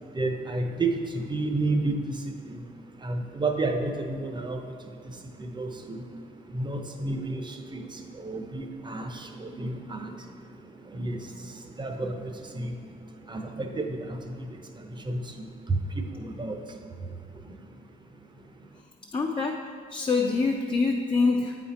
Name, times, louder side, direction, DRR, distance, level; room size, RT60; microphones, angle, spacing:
voice 1, 0.2-2.6 3.0-4.7 5.4-6.0 6.5-10.1 10.9-11.3 11.8-12.8 13.3-14.5 14.7-16.6, right 2 dB, 25° right, 5 dB, 0.7 m, -31 dB
voice 2, 19.1-19.6 19.9-21.6, left 4 dB, 25° left, 1 dB, 0.5 m, -25 dB
8.3 x 4.2 x 4.3 m, 2.1 s
cardioid pair, 90°, 20 cm